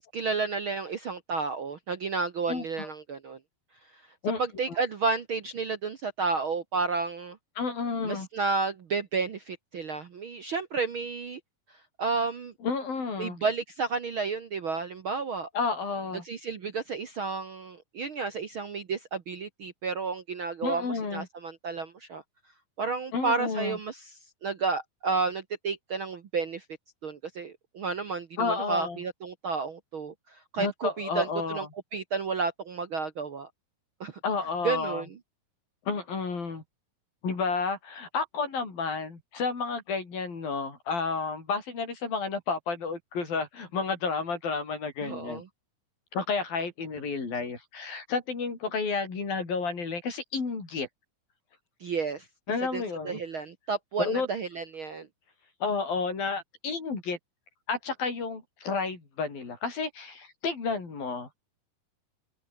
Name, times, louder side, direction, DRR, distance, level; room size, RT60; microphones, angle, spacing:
voice 1, 0.0-3.4 3.9-4.0 4.4-7.4 8.0-11.4 12.0-12.5 13.2-15.5 16.2-22.2 22.8-24.1 24.4-26.6 27.0-31.6 31.9-33.5 34.0-34.2 34.6-35.1 45.0-45.4 51.8-52.3 52.7-55.1, right 4 dB, 50° right, 1.6 m, -31 dB
voice 2, 2.5-2.9 4.2-4.4 7.6-8.3 12.6-13.4 15.5-16.2 20.6-21.3 23.1-23.8 28.4-29.0 30.6-31.7 34.2-35.0 35.9-36.6 37.2-45.4 46.1-50.9 52.5-53.2 54.0-54.3 55.6-57.2 57.7-61.5, left 4 dB, 80° left, 8.1 m, -31 dB
omnidirectional pair, 4.1 m